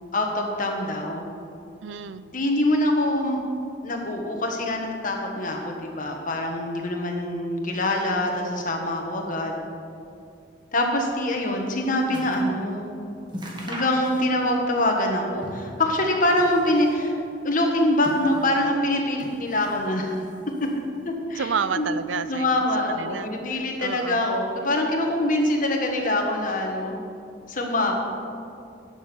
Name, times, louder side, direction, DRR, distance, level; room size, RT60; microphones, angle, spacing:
voice 1, 0.1-1.3 2.3-3.4 3.8-9.6 10.7-12.9 13.7-17.2 17.4-20.2 21.0-21.5 21.8-21.9 22.3-27.0 27.5-27.9, left 1 dB, 45° left, 1 dB, 1.6 m, -24 dB
voice 2, 1.8-2.3 21.4-22.5 22.9-23.3 23.8-24.2, right 6 dB, 80° right, 14 dB, 0.5 m, -29 dB
Transparency sheet plastic sheet handling, 11.8-12.6 12.9-13.0 13.3-14.6 14.9-15.8 16.2-17.0 17.7-18.7 19.2-19.9 20.2-20.9 21.6-21.7, equal, 25° right, 1.6 m, -39 dB
11.0 x 6.6 x 7.1 m, 2.5 s
head